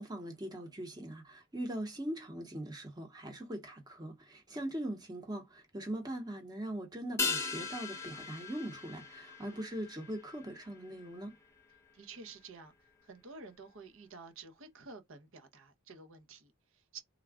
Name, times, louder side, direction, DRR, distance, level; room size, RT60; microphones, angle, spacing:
voice 1, 0.0-11.3, right 1 dB, 20° right, 0.9 m, -41 dB
sound 1, 7.2-11.9 12.2-12.3, left 4 dB, 15° left, 0.7 m, -39 dB
voice 2, 11.9-12.7 13.0-17.0, right 4 dB, 65° right, 0.8 m, -51 dB
3.5 x 2.3 x 3.5 m
head